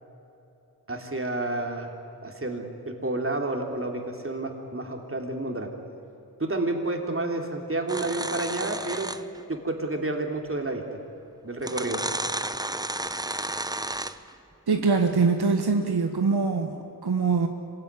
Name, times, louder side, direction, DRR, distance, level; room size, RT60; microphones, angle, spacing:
voice 1, 0.9-1.9 2.2-5.7 6.4-9.1 9.5-10.8 11.4-12.0, right 2 dB, 35° right, 3 dB, 3.4 m, -30 dB
sound 1, 7.9-9.4 10.7-10.8 11.6-14.3, right 1 dB, 10° right, 0.8 m, -32 dB
voice 2, 14.7-17.5, right 4 dB, 80° right, 4 dB, 1.5 m, -23 dB
25.5 x 17.0 x 9.8 m, 2.9 s
wide cardioid pair, 55°, 38 cm